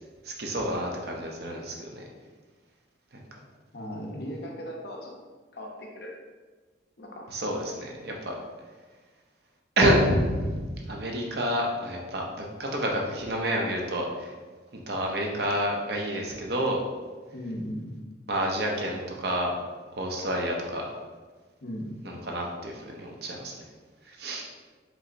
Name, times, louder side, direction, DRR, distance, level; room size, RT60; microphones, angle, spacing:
voice 1, 0.4-2.0 3.1-3.2 7.3-8.4 9.8-10.6 10.9-14.3 14.9-16.8 18.3-19.5 20.0-20.9 22.0-23.5 24.1-24.5, equal, 55° right, 0 dB, 0.7 m, -28 dB
voice 2, 3.7-5.1 5.5-6.1 7.0-7.3 17.3-17.9 21.6-21.9, equal, 55° left, 0 dB, 0.8 m, -37 dB
4.7 x 3.9 x 2.6 m, 1.4 s
head